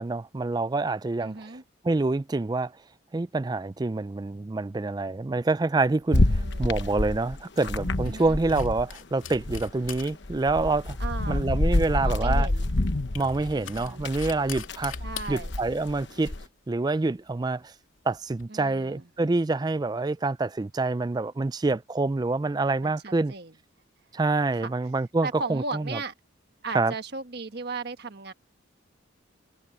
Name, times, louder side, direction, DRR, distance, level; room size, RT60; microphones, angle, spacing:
voice 1, 0.0-1.5 1.8-2.7 3.1-11.0 11.3-12.5 13.1-15.0 15.3-16.3 16.7-17.7 18.1-23.3 24.1-26.0 26.7-26.9, right 3 dB, 20° right, 0.3 m, -27 dB
voice 2, 1.2-1.6 6.2-6.8 8.0-8.4 11.0-11.5 11.9-12.7 13.5-14.1 15.0-15.5 18.5-19.1 22.8-23.5 24.5-24.7 25.2-26.1 26.6-28.3, right 3 dB, 55° right, 1.5 m, -36 dB
sound 1, 5.8-18.5, left 10 dB, 80° left, 3.1 m, -46 dB
sound 2, 6.1-8.9 9.2-16.4, left 1 dB, 60° left, 1.1 m, -28 dB
head